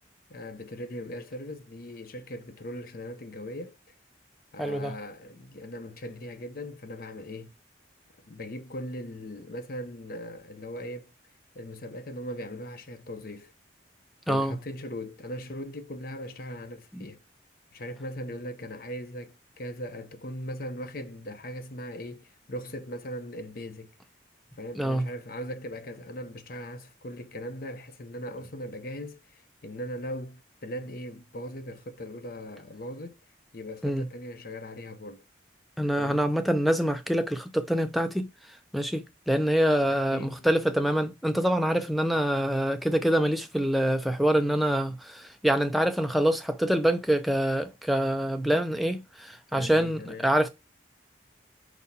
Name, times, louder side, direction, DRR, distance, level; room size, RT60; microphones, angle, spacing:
voice 1, 0.3-3.8 4.5-7.5 8.2-11.1 11.5-13.5 14.3-17.2 17.7-23.9 24.6-33.2 33.5-35.2 36.0-36.3 39.9-40.5 49.5-50.3, equal, 50° left, 0.6 m, -39 dB
voice 2, 4.6-4.9 14.3-14.6 16.9-17.0 24.8-25.0 33.8-34.1 35.8-38.3 38.7-50.5, equal, ahead, 0.4 m, -25 dB
4.7 x 4.0 x 2.7 m
head